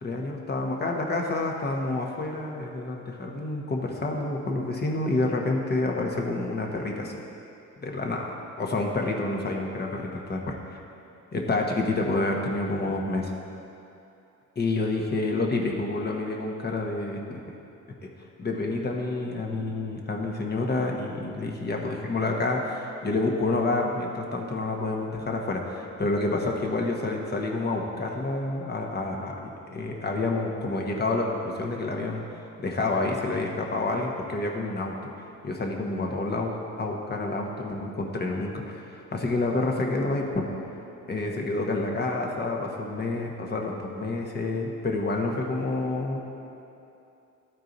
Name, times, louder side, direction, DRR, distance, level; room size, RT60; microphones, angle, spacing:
voice 1, 0.0-7.2 7.8-10.6 11.3-13.3 14.6-17.4 18.0-18.1 18.4-32.2 32.6-35.1 35.4-40.4 41.1-46.2, left 2 dB, 35° left, 0 dB, 1.1 m, -28 dB
12.5 x 4.6 x 4.0 m, 2.7 s
cardioid pair, 90°, 30 cm